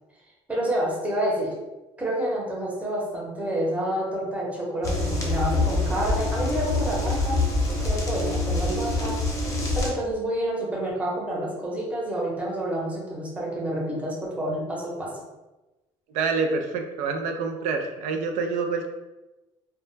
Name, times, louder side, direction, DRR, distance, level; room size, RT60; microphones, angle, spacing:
voice 1, 0.5-1.5 2.0-7.4 7.8-9.2 9.7-15.1, right 1 dB, 10° right, -4 dB, 0.8 m, -28 dB
sound 1, 4.8-9.9, left 2 dB, 30° left, 0.7 m, -25 dB
voice 2, 16.1-18.9, right 4 dB, 85° right, 4 dB, 0.4 m, -27 dB
2.1 x 2.0 x 3.2 m, 1.1 s
cardioid pair, 100°, 12 cm